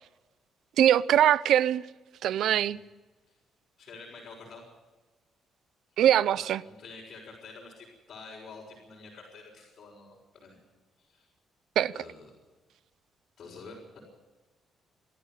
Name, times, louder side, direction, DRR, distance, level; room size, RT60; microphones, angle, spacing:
voice 1, 0.8-1.8 2.2-2.8 6.0-6.6 11.8-11.9, right 11 dB, 75° right, 0.5 m, -22 dB
voice 2, 3.8-4.6 6.3-10.6 11.0-11.3 11.9-12.3 13.4-14.0, left 4 dB, 55° left, 6.1 m, -48 dB
20.0 x 14.0 x 9.3 m
cardioid pair, 90°, 0 cm